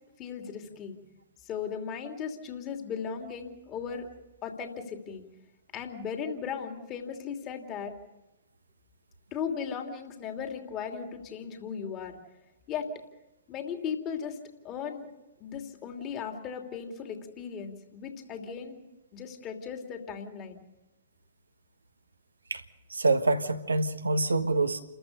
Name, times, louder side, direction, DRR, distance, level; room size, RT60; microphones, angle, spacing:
voice 1, 0.2-1.0 1.4-4.1 4.4-5.2 5.7-7.9 9.3-12.2 12.7-12.9 13.5-14.4 14.6-15.1 15.4-18.8 19.1-20.6, left 7 dB, 30° left, 4 dB, 2.8 m, -37 dB
voice 2, 22.9-24.8, right 3 dB, 80° right, 8 dB, 1.4 m, -26 dB
29.5 x 14.5 x 6.7 m, 0.97 s
figure-of-eight pair, 115°, 0 cm